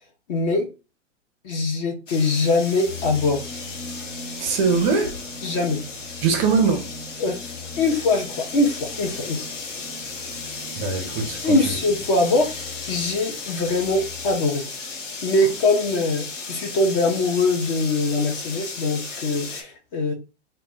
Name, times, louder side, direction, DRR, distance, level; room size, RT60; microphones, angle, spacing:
voice 1, 0.3-0.7 1.4-3.4 5.4-5.8 7.2-9.5 11.4-14.6 15.2-20.1, left 2 dB, 30° left, 0.4 m, -22 dB
sound 1, 2.1-19.6, left 4 dB, 80° left, 0.8 m, -35 dB
sound 2, 2.9-14.4, left 3 dB, 65° left, 1.1 m, -40 dB
voice 2, 4.4-5.1 6.2-6.8 10.8-11.7, right 5 dB, 30° right, 0.4 m, -22 dB
2.1 x 2.1 x 3.6 m
figure-of-eight pair, 110°, 36 cm